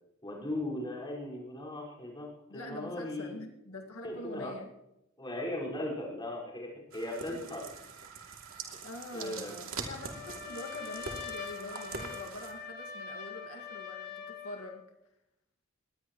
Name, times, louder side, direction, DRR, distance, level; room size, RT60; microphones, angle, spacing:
voice 1, 0.2-3.4 4.0-4.5 5.2-7.7 8.2-8.3 9.1-9.5, left 1 dB, 20° left, -3 dB, 5.0 m, -38 dB
voice 2, 2.5-4.7 8.8-14.8, left 2 dB, 85° left, 2 dB, 1.9 m, -44 dB
sound 1, 6.9-12.5, right 4 dB, 70° right, 2.8 m, -43 dB
Trumpet, 9.9-14.8, left 6 dB, 55° left, 3.6 m, -43 dB
21.5 x 19.0 x 3.1 m, 0.91 s
head